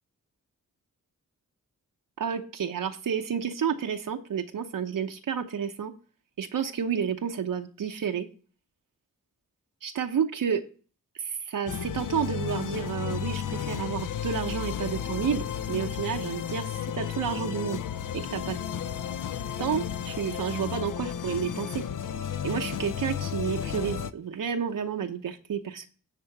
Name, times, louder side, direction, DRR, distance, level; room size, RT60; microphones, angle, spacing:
voice 1, 2.2-5.9 6.4-8.3 9.8-10.6 11.2-17.8 18.1-18.6 19.6-21.8 22.4-25.9, right 7 dB, 85° right, 5 dB, 0.8 m, -30 dB
sound 1, 11.7-24.1, left 9 dB, 75° left, 0.6 m, -33 dB
10.0 x 3.7 x 7.0 m, 0.39 s
cardioid pair, 65°, 32 cm